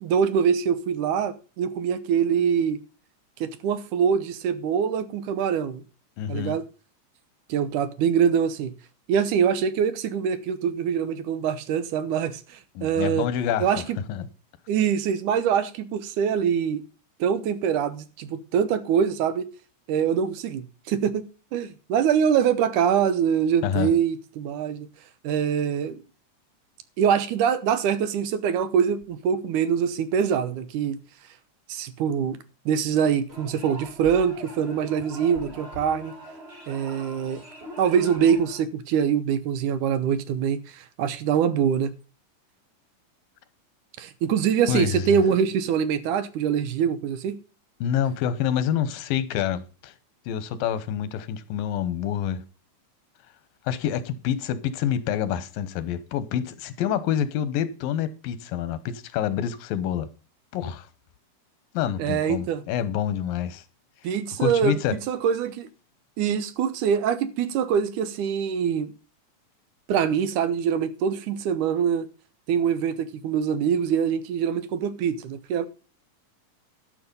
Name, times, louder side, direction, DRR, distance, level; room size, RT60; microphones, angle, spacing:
voice 1, 0.0-2.8 3.4-5.8 6.3-6.7 7.5-8.7 9.1-13.3 13.6-14.0 14.7-16.8 17.2-19.5 19.9-21.3 21.5-24.9 25.2-26.0 27.0-31.0 31.7-32.4 32.7-36.1 36.7-37.4 37.8-41.9 44.0-47.4 62.0-62.6 64.0-65.7 66.2-68.9 69.9-72.1 72.5-75.7, right 8 dB, 75° right, 2.3 m, -24 dB
voice 2, 6.2-6.6 12.8-14.3 23.6-23.9 44.7-45.2 47.8-49.9 50.3-52.4 53.7-60.1 60.5-60.9 61.7-63.6 64.0-65.0, left 9 dB, 90° left, 2.7 m, -27 dB
sound 1, 33.3-38.6, equal, 20° right, 2.0 m, -42 dB
12.5 x 6.9 x 5.3 m
omnidirectional pair, 3.9 m